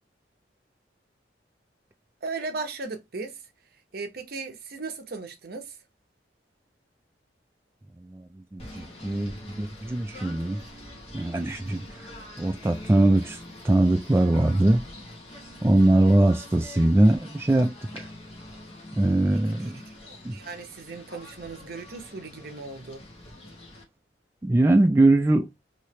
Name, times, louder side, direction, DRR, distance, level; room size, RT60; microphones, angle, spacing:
voice 1, 2.2-3.4 3.9-5.8 19.6-23.1, right 3 dB, 60° right, 0.8 m, -37 dB
voice 2, 8.0-10.6 11.1-12.1 12.4-14.8 15.6-18.1 18.9-19.8 20.2-20.4 24.4-25.5, right 1 dB, 15° right, 0.3 m, -22 dB
Singing / Bird, 8.6-23.8, left 1 dB, 35° left, 1.0 m, -44 dB
3.1 x 2.8 x 3.1 m
head